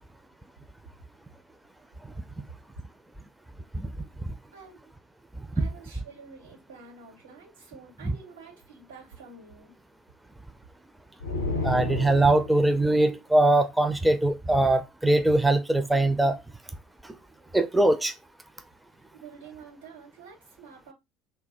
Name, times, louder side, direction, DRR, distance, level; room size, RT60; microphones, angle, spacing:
voice 1, 5.5-9.7 19.1-20.9, right 5 dB, 85° right, 2.3 m, -48 dB
sound 1, 11.2-12.8, left 2 dB, 85° left, 0.5 m, -31 dB
voice 2, 11.6-16.4 17.0-17.1 17.5-18.1, right 2 dB, 10° right, 0.4 m, -22 dB
3.3 x 2.1 x 4.1 m
figure-of-eight pair, 65°, 0 cm